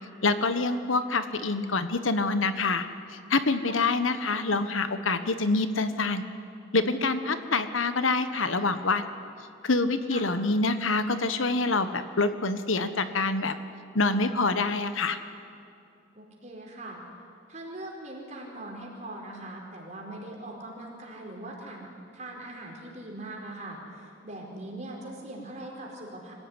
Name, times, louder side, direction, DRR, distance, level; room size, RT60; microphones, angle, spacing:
voice 1, 0.2-2.9 3.3-6.2 6.7-9.1 9.6-13.5 13.9-15.2, left 3 dB, 90° left, 10 dB, 1.3 m, -26 dB
voice 2, 3.7-4.0 10.1-10.3 16.1-17.0 17.5-21.9 22.1-26.3, right 1 dB, 35° right, -1 dB, 4.7 m, -41 dB
25.0 x 16.0 x 9.8 m, 2.5 s
head